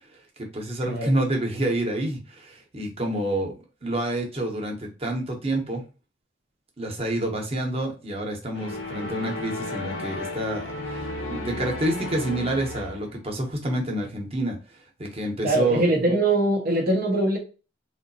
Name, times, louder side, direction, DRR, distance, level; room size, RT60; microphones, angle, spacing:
voice 1, 0.4-3.5 3.8-5.8 6.8-14.6 15.0-15.9, right 1 dB, 30° right, 1 dB, 1.0 m, -28 dB
sound 1, 8.5-13.2, left 2 dB, 85° left, 1.0 m, -34 dB
voice 2, 15.4-17.4, right 1 dB, 50° right, -2 dB, 0.7 m, -22 dB
3.8 x 2.8 x 2.6 m, 0.33 s
head